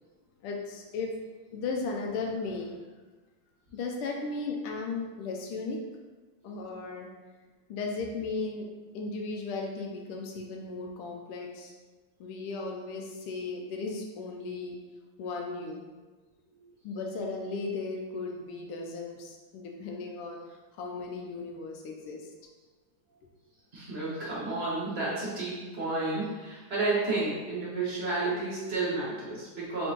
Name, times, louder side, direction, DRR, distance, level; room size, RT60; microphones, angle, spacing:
voice 1, 0.4-1.1 1.5-2.8 3.7-5.8 6.4-7.1 7.7-8.7 8.9-11.7 12.2-14.8 15.2-15.8 16.8-22.2, left 3 dB, 85° left, 1 dB, 1.5 m, -36 dB
voice 2, 23.7-29.9, right 3 dB, 40° right, -7 dB, 0.9 m, -31 dB
4.3 x 3.8 x 2.9 m, 1.3 s
omnidirectional pair, 2.4 m